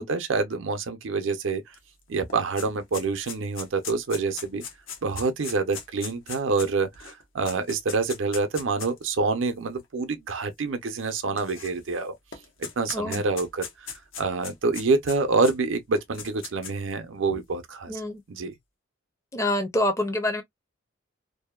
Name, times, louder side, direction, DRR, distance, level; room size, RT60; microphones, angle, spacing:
voice 1, 0.0-1.6 2.1-4.6 5.0-12.1 12.8-18.0 18.3-18.5, right 4 dB, 75° right, 0.5 m, -27 dB
sound 1, 1.7-1.8 2.1-9.0 9.8-9.9 11.0-12.0 12.3-15.5 16.0-16.9, left 6 dB, 80° left, 0.8 m, -39 dB
voice 2, 12.9-13.3 17.9-18.2 19.3-20.4, left 1 dB, 15° left, 0.5 m, -26 dB
2.6 x 2.1 x 2.2 m
head